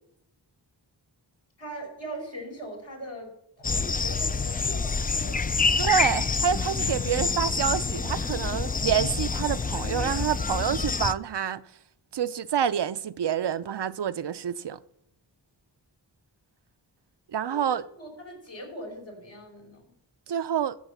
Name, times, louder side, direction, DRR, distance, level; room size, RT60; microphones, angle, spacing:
voice 1, 1.6-5.5 17.5-19.8, right 1 dB, 75° left, 5.5 m, -41 dB
sound 1, 3.6-11.1, left 4 dB, 20° left, 0.4 m, -27 dB
voice 2, 5.8-11.6 12.1-14.8 17.3-17.8 20.3-20.8, right 8 dB, 60° right, 0.6 m, -27 dB
13.5 x 7.3 x 7.2 m
cardioid pair, 45°, 46 cm